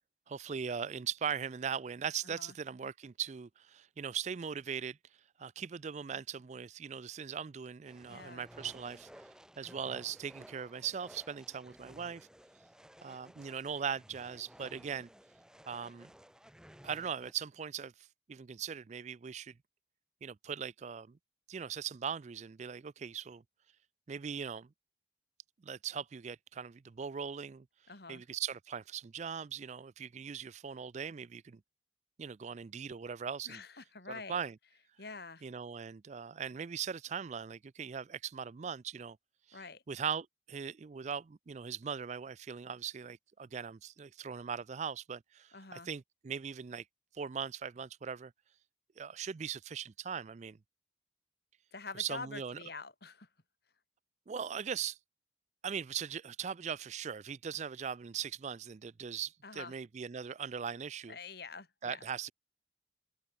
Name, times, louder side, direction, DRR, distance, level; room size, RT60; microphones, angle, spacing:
voice 1, 0.3-5.0 5.4-9.3 9.6-12.3 13.0-15.1 15.6-16.1 16.8-19.5 20.2-21.2 21.5-23.4 24.1-24.7 25.6-27.7 28.1-31.6 32.2-33.6 34.1-34.6 35.4-39.2 39.5-39.6 39.9-46.8 47.1-48.3 49.0-50.6 51.9-52.6 54.3-55.0 55.6-61.2 61.8-62.3, right 7 dB, 40° right, 0.4 m, -40 dB
sound 1, 7.9-17.3, equal, 5° right, 1.5 m, -56 dB
voice 2, 8.1-8.5 27.9-28.2 33.5-34.4 35.0-35.4 39.5-39.8 45.5-45.9 51.7-53.3 59.4-59.7 61.1-62.0, left 4 dB, 60° left, 2.4 m, -46 dB
open air
head